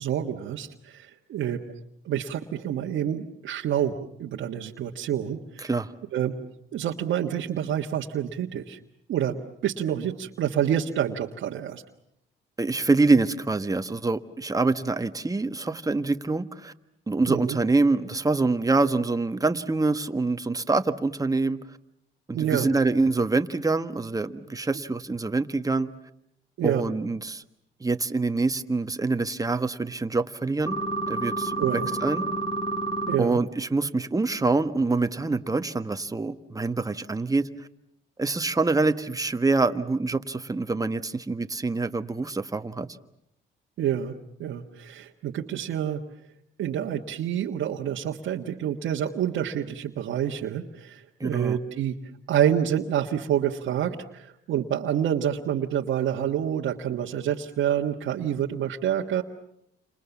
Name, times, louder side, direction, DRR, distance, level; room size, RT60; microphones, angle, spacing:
voice 1, 0.0-1.6 2.0-5.7 6.1-6.3 6.7-8.8 9.1-11.8 17.3-17.6 22.3-22.7 26.6-26.9 31.6-31.9 33.1-33.4 43.8-44.1 44.4-46.0 46.6-52.0 52.3-59.2, right 10 dB, 75° right, -1 dB, 1.6 m, -28 dB
voice 2, 5.6-5.9 12.6-16.7 17.1-21.6 22.3-25.9 26.6-27.4 27.8-30.8 31.1-32.3 33.2-37.7 38.2-42.9 51.2-51.6, right 3 dB, 15° right, 9 dB, 1.4 m, -25 dB
sound 1, 30.7-33.2, right 2 dB, 25° left, 3.6 m, -29 dB
30.0 x 27.0 x 7.2 m, 0.76 s
cardioid pair, 90°, 20 cm